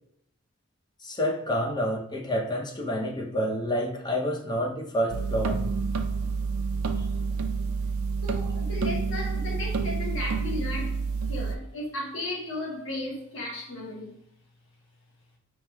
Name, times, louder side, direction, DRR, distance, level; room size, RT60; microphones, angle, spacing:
voice 1, 1.0-5.7, equal, 20° left, 0.6 m, -28 dB
sound 1, 5.1-11.6, right 4 dB, 85° right, 0.4 m, -29 dB
voice 2, 8.2-14.2, left 2 dB, 65° left, 1.4 m, -35 dB
4.7 x 3.1 x 2.3 m
head